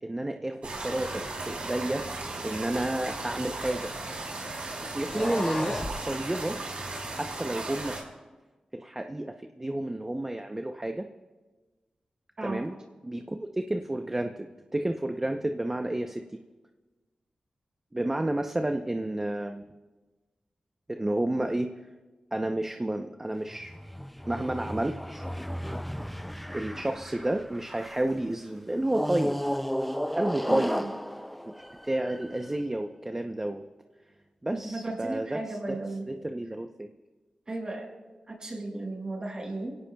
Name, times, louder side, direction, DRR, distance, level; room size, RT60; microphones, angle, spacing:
voice 1, 0.0-2.1 2.4-3.9 4.8-6.6 7.1-8.0 8.7-11.1 12.4-12.8 13.0-16.4 17.9-19.6 20.9-21.7 22.3-23.7 24.3-25.2 26.5-29.4 30.1-30.9 31.8-33.6 34.4-35.4 35.7-35.8 36.1-36.9, right 1 dB, 20° right, 5 dB, 0.7 m, -31 dB
sound 1, 0.6-8.0, right 2 dB, 75° right, 4.7 m, -36 dB
sound 2, 2.7-4.2 4.9-6.0, left 2 dB, 35° left, 2.6 m, -35 dB
sound 3, 23.4-28.1 28.9-32.5, equal, ahead, 0.4 m, -34 dB
voice 2, 30.5-30.9 34.5-36.1 37.5-37.9 38.3-39.8, right 2 dB, 40° right, -1 dB, 5.7 m, -35 dB
25.5 x 17.5 x 2.3 m, 1.2 s
wide cardioid pair, 75°, 2 cm